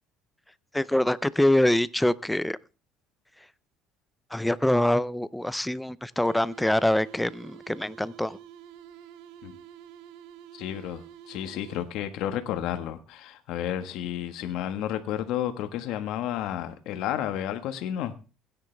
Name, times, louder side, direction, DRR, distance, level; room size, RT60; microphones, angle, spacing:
voice 1, 0.7-2.6 4.3-8.4, left 1 dB, 5° left, 17 dB, 0.5 m, -24 dB
sound 1, 6.2-12.2, right 9 dB, 85° right, 1.4 m, -48 dB
voice 2, 10.5-18.1, left 11 dB, 65° left, 8 dB, 1.4 m, -31 dB
17.0 x 9.7 x 3.3 m, 0.34 s
cardioid pair, 145°, 0 cm